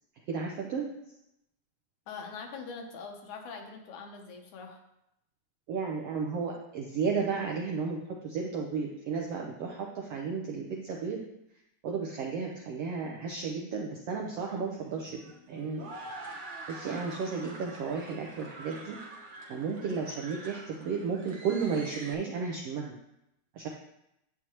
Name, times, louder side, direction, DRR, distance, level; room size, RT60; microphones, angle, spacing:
voice 1, 0.3-0.9 5.7-8.0 8.2-11.2 11.8-15.2 15.5-15.9 16.7-19.0 19.5-22.9 23.6-23.7, right 5 dB, 70° right, 0 dB, 1.5 m, -33 dB
voice 2, 2.1-4.8, left 5 dB, 75° left, 3 dB, 2.3 m, -43 dB
sound 1, 14.2-22.1, right 2 dB, 50° right, 1.7 m, -46 dB
9.5 x 8.5 x 3.0 m, 0.84 s
omnidirectional pair, 3.6 m